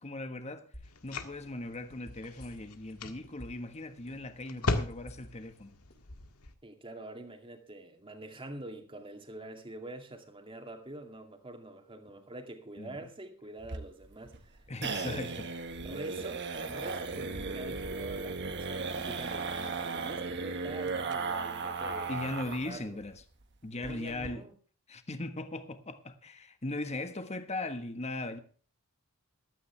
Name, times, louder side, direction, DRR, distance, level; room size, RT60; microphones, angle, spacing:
voice 1, 0.0-5.8 12.8-13.1 14.7-15.5 22.1-23.2 23.6-24.5 24.9-28.4, left 2 dB, 30° left, 1.4 m, -39 dB
sound 1, 0.7-1.1 1.4-2.9 3.2-3.7 4.1-5.6 5.9-6.0, left 1 dB, 50° left, 4.6 m, -50 dB
sound 2, 0.8-6.5, left 2 dB, 85° left, 1.7 m, -39 dB
voice 2, 6.6-14.6 15.0-15.2 15.8-23.0 23.7-24.5, right 2 dB, 25° right, 2.4 m, -46 dB
sound 3, 13.6-22.7 23.0-23.1 23.4-23.5 23.8-24.3, right 4 dB, 55° right, 1.5 m, -36 dB
15.0 x 13.0 x 3.4 m
head